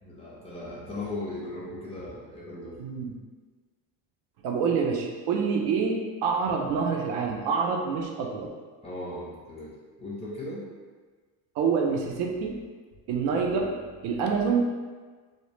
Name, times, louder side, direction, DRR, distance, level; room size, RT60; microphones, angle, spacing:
voice 1, 0.0-2.7 8.8-9.7 10.0-10.6, left 2 dB, 15° left, -6 dB, 0.4 m, -37 dB
voice 2, 2.8-3.1 4.4-8.5 11.6-12.5 13.1-13.8 14.0-14.6, right 5 dB, 75° right, 1 dB, 0.5 m, -26 dB
2.1 x 2.0 x 3.0 m, 1.4 s
cardioid pair, 130°, 42 cm